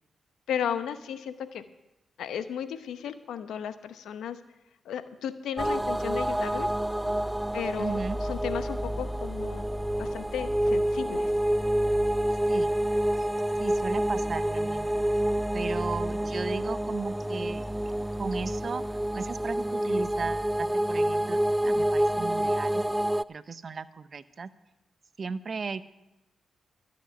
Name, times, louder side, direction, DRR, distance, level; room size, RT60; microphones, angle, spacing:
voice 1, 0.5-1.6 2.2-4.4 4.8-6.7 7.5-9.6 10.0-11.3, left 8 dB, 85° left, 11 dB, 0.9 m, -34 dB
sound 1, 5.6-23.2, right 1 dB, 10° right, 0.3 m, -28 dB
voice 2, 7.8-8.2 12.5-12.8 13.6-15.0 15.5-17.6 18.2-18.8 19.1-22.8 23.3-24.5 25.2-25.8, right 5 dB, 50° right, 15 dB, 0.7 m, -36 dB
13.5 x 6.3 x 9.5 m, 0.97 s
supercardioid pair, 55°, 0 cm